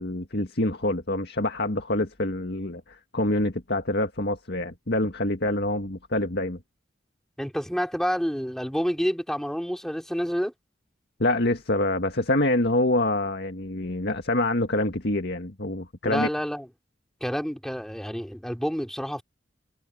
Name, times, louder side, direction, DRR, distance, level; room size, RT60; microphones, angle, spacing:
voice 1, 0.0-6.6 11.2-16.3, left 1 dB, 60° left, 2.0 m, -26 dB
voice 2, 7.4-10.5 16.0-16.7 17.2-19.2, equal, ahead, 3.7 m, -28 dB
head